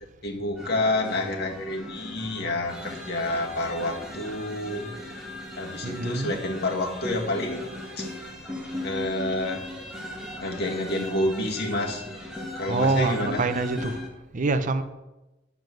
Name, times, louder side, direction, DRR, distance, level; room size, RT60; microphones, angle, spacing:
voice 1, 0.2-4.9 5.6-7.7 8.0-8.1 8.8-9.6 10.4-12.0 12.6-13.4, left 1 dB, 55° left, 1.8 m, -28 dB
sound 1, 0.6-14.1, left 1 dB, 5° right, 1.9 m, -38 dB
voice 2, 5.8-6.4 12.7-14.1 14.3-14.8, right 3 dB, 40° right, 0.6 m, -26 dB
9.2 x 7.2 x 6.2 m
head